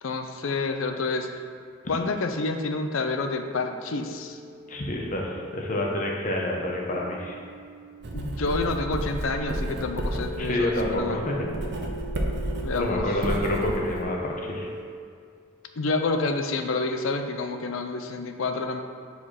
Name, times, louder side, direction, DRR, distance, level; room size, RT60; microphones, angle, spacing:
voice 1, 0.0-1.3 1.9-4.4 8.1-11.3 12.6-13.1 15.8-18.8, left 3 dB, 70° left, 6 dB, 0.5 m, -28 dB
sound 1, 1.6-14.8, equal, 10° right, 0.5 m, -41 dB
voice 2, 4.7-7.4 10.4-11.5 12.7-14.7, left 1 dB, 35° left, -1 dB, 0.7 m, -28 dB
Writing, 8.0-14.0, right 1 dB, 50° right, 0.6 m, -32 dB
4.7 x 4.7 x 4.3 m, 2.2 s
head